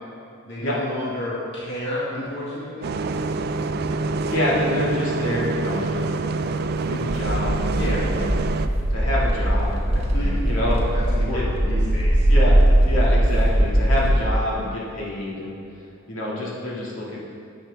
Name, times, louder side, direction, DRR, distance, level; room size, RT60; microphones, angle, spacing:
voice 1, 0.5-2.9 7.8-8.0 10.1-12.2, left 1 dB, 55° left, -7 dB, 1.8 m, -30 dB
Bus, 2.8-8.7, right 3 dB, 50° right, 0.3 m, -26 dB
voice 2, 4.2-6.1 6.9-8.3 8.9-11.4 12.3-12.6 12.8-15.6 16.1-17.2, left 1 dB, 75° left, -6 dB, 2.1 m, -27 dB
sound 1, 7.1-14.3, right 1 dB, 30° right, 1.1 m, -20 dB
10.0 x 8.2 x 3.4 m, 2.5 s
head